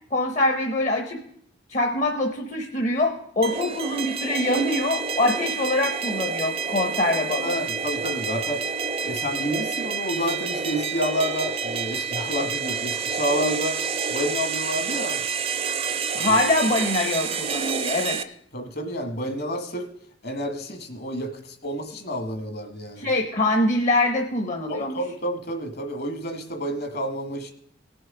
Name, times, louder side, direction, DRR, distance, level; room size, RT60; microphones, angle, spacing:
voice 1, 0.1-1.2 1.7-7.6 16.1-18.2 23.0-25.0, left 2 dB, 40° left, 4 dB, 0.9 m, -24 dB
sound 1, 3.4-18.2, right 6 dB, 30° right, 0.6 m, -28 dB
voice 2, 7.4-8.6 9.0-13.8 14.1-15.2 16.2-16.4 18.5-19.9 20.2-23.1 24.7-27.5, equal, 55° left, 6 dB, 1.5 m, -29 dB
18.0 x 6.2 x 4.9 m, 0.69 s
head